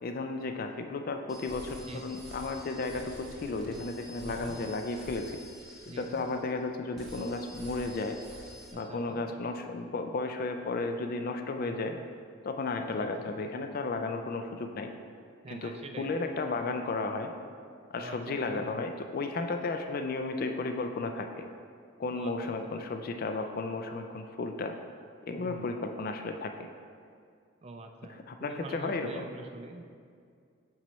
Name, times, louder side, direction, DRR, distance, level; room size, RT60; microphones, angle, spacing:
voice 1, 0.0-5.4 6.0-8.2 8.7-12.0 12.4-14.9 15.5-17.3 17.9-21.5 22.0-24.7 25.2-26.5 28.1-29.3, left 3 dB, 45° left, 6 dB, 0.3 m, -34 dB
sound 1, 1.3-6.6 6.9-8.7, equal, ahead, 1.2 m, -48 dB
voice 2, 1.9-2.2 4.2-4.6 5.8-6.2 8.7-9.2 11.6-12.0 13.0-13.3 15.4-16.1 17.9-18.6 22.1-22.3 22.6-22.7 25.4-25.7 27.6-29.8, right 2 dB, 30° right, 5 dB, 0.4 m, -45 dB
10.5 x 4.2 x 3.1 m, 2.2 s
head